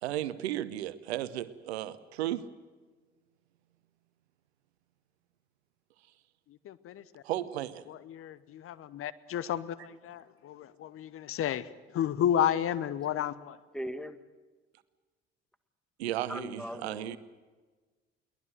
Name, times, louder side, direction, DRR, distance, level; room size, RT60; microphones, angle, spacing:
voice 1, 0.0-2.5 7.2-7.8 16.0-17.2, right 13 dB, 70° right, 16 dB, 0.9 m, -34 dB
voice 2, 6.6-7.2 7.9-13.6, left 10 dB, 40° left, 17 dB, 0.9 m, -32 dB
voice 3, 13.7-14.2 16.3-17.2, equal, ahead, 12 dB, 1.5 m, -39 dB
23.0 x 18.5 x 8.0 m, 1.3 s
figure-of-eight pair, 55°, 33 cm